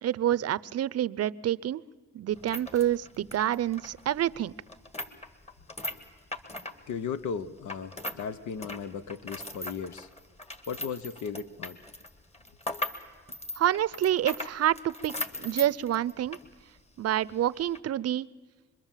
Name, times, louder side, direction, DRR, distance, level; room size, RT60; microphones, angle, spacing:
voice 1, 0.0-1.8 2.1-4.5 13.6-15.1 15.4-16.4 17.0-18.3, right 12 dB, 55° right, 19 dB, 0.6 m, -27 dB
sound 1, 2.3-8.3 8.5-16.5 16.8-16.9 17.6-17.8, left 1 dB, 20° left, 2.0 m, -39 dB
voice 2, 6.9-10.1 10.7-11.8 12.7-12.8, left 6 dB, 70° left, 13 dB, 1.0 m, -36 dB
25.5 x 22.5 x 7.4 m, 1.5 s
cardioid pair, 90°, 30 cm